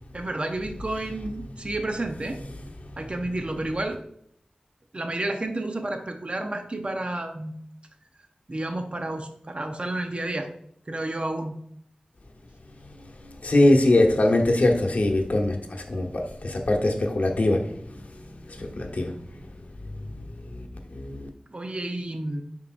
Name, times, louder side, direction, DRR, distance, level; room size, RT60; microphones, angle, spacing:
voice 1, 0.1-2.4 3.0-4.0 4.9-7.5 8.5-10.5 10.9-11.6 21.5-22.4, right 2 dB, 45° right, 4 dB, 0.8 m, -30 dB
voice 2, 13.4-18.0 18.5-19.1 20.5-20.7 20.9-21.3, left 1 dB, 70° left, 2 dB, 1.1 m, -22 dB
7.5 x 5.4 x 2.5 m, 0.70 s
wide cardioid pair, 45°, 3 cm